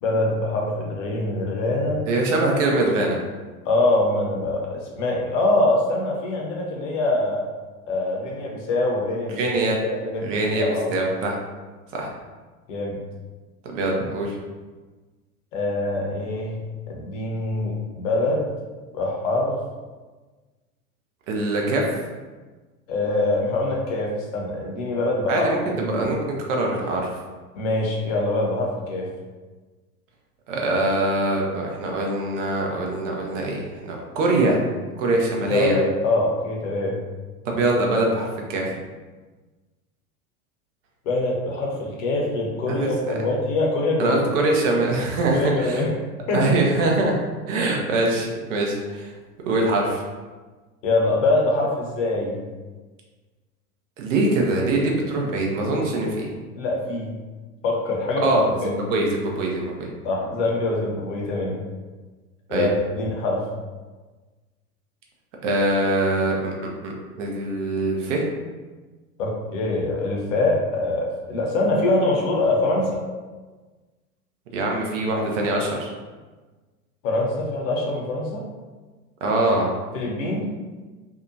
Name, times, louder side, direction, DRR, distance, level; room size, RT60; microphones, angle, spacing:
voice 1, 0.0-2.0 3.6-7.4 7.9-9.4 9.8-10.9 12.7-12.9 15.5-18.5 18.9-19.6 22.9-25.5 25.7-26.1 27.5-29.1 35.5-37.0 41.0-44.2 45.3-45.9 46.3-46.6 50.8-52.4 54.8-54.9 56.6-57.1 57.6-58.3 58.6-58.7 60.0-61.6 62.5-63.4 69.2-73.0 77.0-78.5 79.9-80.5, left 2 dB, 55° left, -1 dB, 0.8 m, -24 dB
voice 2, 2.1-3.2 9.4-9.8 10.2-11.4 11.9-12.1 13.6-14.3 21.3-21.8 25.3-26.2 26.5-27.0 30.5-34.6 35.0-35.7 37.5-38.7 42.7-43.1 44.0-45.8 46.3-47.2 47.5-49.1 49.5-50.0 54.0-56.3 58.2-59.9 62.5-62.7 65.4-66.5 66.8-68.3 74.5-75.9 79.2-79.7, right 2 dB, 55° right, 0 dB, 0.7 m, -23 dB
2.7 x 2.3 x 2.6 m, 1.3 s
hypercardioid pair, 90°, 45 cm